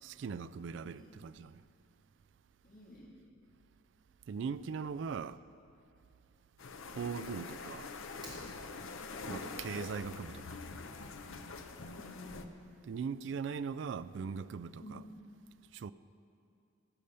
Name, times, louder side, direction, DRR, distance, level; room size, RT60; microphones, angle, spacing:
voice 1, 0.0-1.6 4.3-5.4 6.9-7.9 9.3-10.5 12.9-15.0 15.7-15.9, right 6 dB, 60° right, 0.3 m, -40 dB
voice 2, 2.6-3.1 8.9-9.4 12.0-12.3 14.8-15.0, left 1 dB, 40° left, 2.2 m, -51 dB
sound 1, 6.6-12.5, left 4 dB, 75° left, 0.7 m, -45 dB
Fire, 8.1-9.1, right 1 dB, 20° right, 2.7 m, -52 dB
16.5 x 6.8 x 6.6 m
head